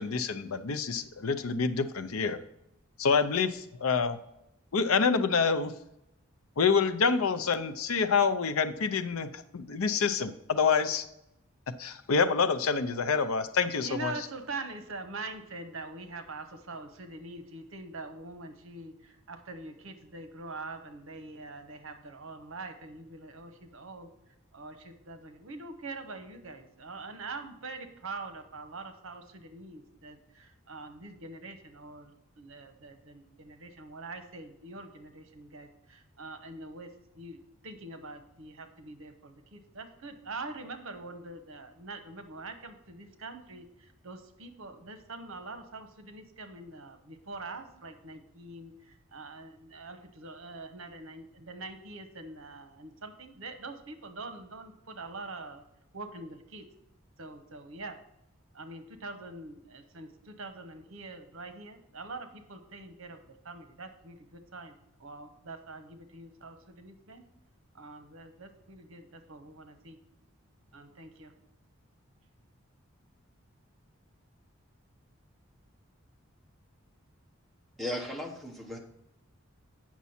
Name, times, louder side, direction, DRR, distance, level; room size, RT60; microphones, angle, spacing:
voice 1, 0.0-2.4 3.0-4.2 4.7-5.7 6.6-11.0 11.8-14.1, left 5 dB, 85° left, 11 dB, 0.6 m, -27 dB
voice 2, 13.8-24.1 24.5-55.6 55.9-56.7 57.2-58.0 58.5-63.2 63.4-64.7 65.0-67.2 67.7-70.0 70.7-71.3, right 3 dB, 70° right, 8 dB, 0.9 m, -44 dB
voice 3, 77.8-78.8, left 1 dB, ahead, -2 dB, 1.1 m, -36 dB
8.2 x 6.0 x 4.3 m, 0.82 s
head